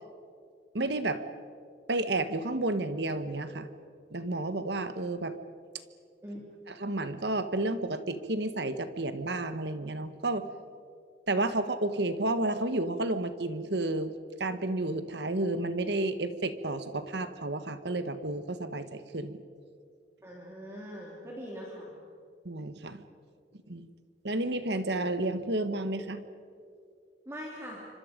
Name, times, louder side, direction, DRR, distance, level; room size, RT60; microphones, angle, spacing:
voice 1, 0.7-1.2 1.9-3.7 4.1-5.4 6.7-10.5 11.3-14.1 14.4-19.3 22.4-23.0 23.7-23.9 24.2-26.2, right 2 dB, 70° right, 10 dB, 1.4 m, -31 dB
voice 2, 20.2-22.0 27.3-27.9, equal, 15° right, -3 dB, 3.0 m, -42 dB
28.5 x 25.5 x 5.2 m, 2.3 s
head